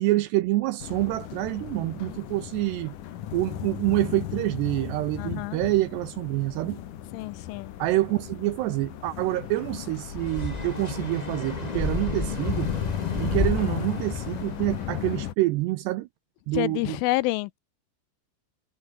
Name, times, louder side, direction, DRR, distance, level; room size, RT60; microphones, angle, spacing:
voice 1, 0.0-3.0 3.3-6.8 7.8-12.7 13.1-16.1 16.5-17.0, right 18 dB, 85° right, 2.4 m, -27 dB
sound 1, 0.8-15.3, left 11 dB, 65° left, 2.2 m, -35 dB
voice 2, 5.2-5.6 7.1-7.7 16.5-17.6, left 22 dB, 85° left, 3.0 m, -28 dB
sound 2, 10.1-15.0, left 2 dB, 10° left, 2.0 m, -32 dB
omnidirectional pair, 5.8 m